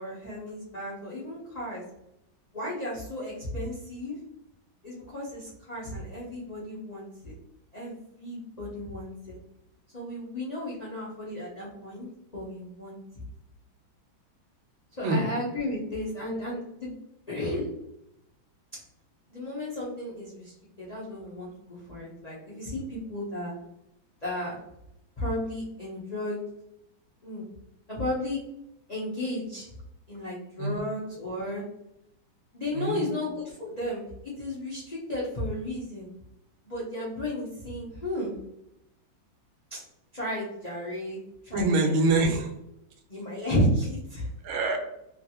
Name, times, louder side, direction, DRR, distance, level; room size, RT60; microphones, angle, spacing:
voice 1, 0.0-1.8 2.5-4.2 4.8-7.3 7.7-9.4 9.9-12.1 12.3-13.0 15.0-16.9 17.3-17.7 19.3-23.5 24.2-24.6 25.2-26.4 27.2-27.5 27.9-28.4 28.9-29.7 30.1-31.6 32.5-34.0 34.4-36.1 36.6-38.3 39.7-39.8 40.1-41.7 42.2-42.3 43.1-44.3, left 1 dB, 75° left, -7 dB, 0.3 m, -33 dB
voice 2, 32.7-33.1 41.5-42.5 44.4-44.8, right 2 dB, 90° right, 4 dB, 1.5 m, -25 dB
3.2 x 2.5 x 2.8 m, 0.82 s
omnidirectional pair, 2.2 m